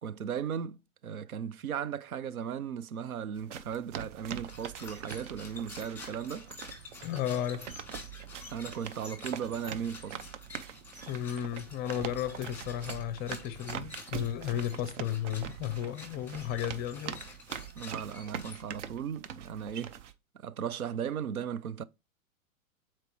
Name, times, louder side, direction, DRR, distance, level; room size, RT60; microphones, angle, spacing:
voice 1, 0.0-6.5 8.5-10.2 17.7-19.9 20.3-21.8, right 8 dB, 85° right, 0.6 m, -36 dB
sound 1, 3.4-20.1, right 8 dB, 60° right, 0.8 m, -43 dB
sound 2, 4.4-19.0, left 3 dB, 5° left, 2.2 m, -49 dB
voice 2, 7.0-7.7 11.1-17.2, left 10 dB, 25° left, 0.6 m, -34 dB
8.0 x 4.4 x 3.1 m
hypercardioid pair, 115°, 42 cm